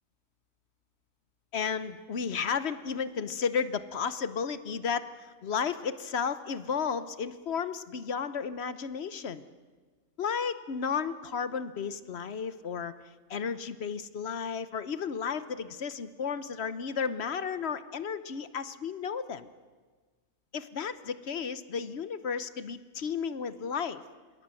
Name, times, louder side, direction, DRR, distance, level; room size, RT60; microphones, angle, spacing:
voice 1, 1.5-5.1 5.4-9.5 10.2-12.9 13.3-19.5 20.5-24.0, left 6 dB, 55° left, 13 dB, 1.1 m, -33 dB
27.0 x 20.5 x 7.7 m, 1.4 s
omnidirectional pair, 1.4 m